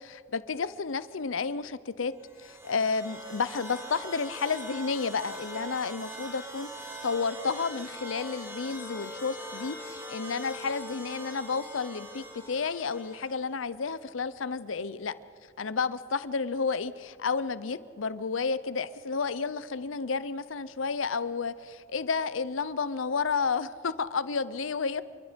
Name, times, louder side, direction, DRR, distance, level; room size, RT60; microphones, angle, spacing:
voice 1, 0.0-2.1 2.4-6.7 7.0-15.1 15.6-25.0, left 5 dB, 85° left, 16 dB, 0.7 m, -31 dB
sound 1, 2.2-13.4, right 1 dB, 10° right, 3.1 m, -42 dB
27.5 x 23.5 x 5.2 m, 2.5 s
head